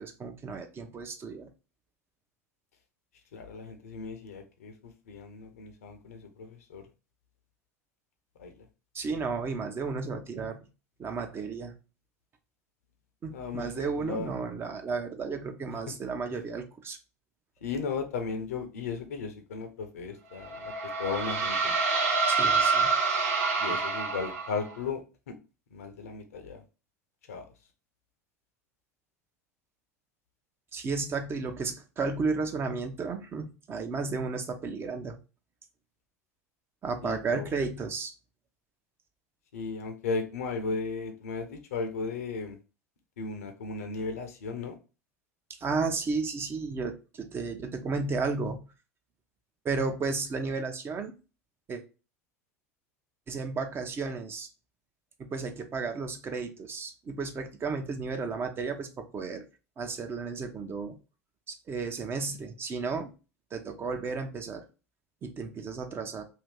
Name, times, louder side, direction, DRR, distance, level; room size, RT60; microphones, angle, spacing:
voice 1, 0.0-1.5 8.9-10.6 11.0-11.7 13.2-17.0 22.3-22.9 30.7-35.2 36.8-38.1 45.6-48.6 49.6-51.1 51.7-51.8 53.3-54.5 55.2-59.4 59.8-61.0 61.7-63.1 63.5-64.6 65.2-66.2, right 4 dB, 30° right, 5 dB, 0.7 m, -33 dB
voice 2, 3.3-4.7 5.1-6.8 8.4-8.6 13.3-14.3 17.6-20.7 21.0-21.7 23.6-25.0 25.3-25.4 25.7-26.6 27.3-27.4 37.0-37.5 39.5-42.6 43.2-44.7, left 4 dB, 75° left, 6 dB, 0.7 m, -35 dB
sound 1, 20.4-24.7, right 4 dB, 70° right, 0.9 m, -27 dB
2.8 x 2.6 x 3.4 m, 0.31 s
hypercardioid pair, 80°, 8 cm